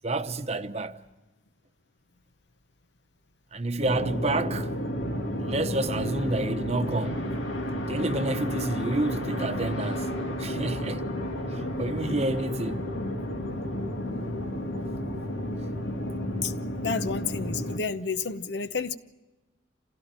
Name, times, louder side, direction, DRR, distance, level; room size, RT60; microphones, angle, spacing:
voice 1, 0.0-1.0 3.5-4.7 5.4-7.3 7.9-10.1 10.4-11.0 11.5-12.9, right 2 dB, 35° right, 0.9 m, -29 dB
sound 1, 3.8-17.8, equal, 80° left, 2.3 m, -31 dB
voice 2, 16.8-19.0, left 5 dB, 60° left, 0.8 m, -30 dB
27.0 x 17.0 x 9.0 m
head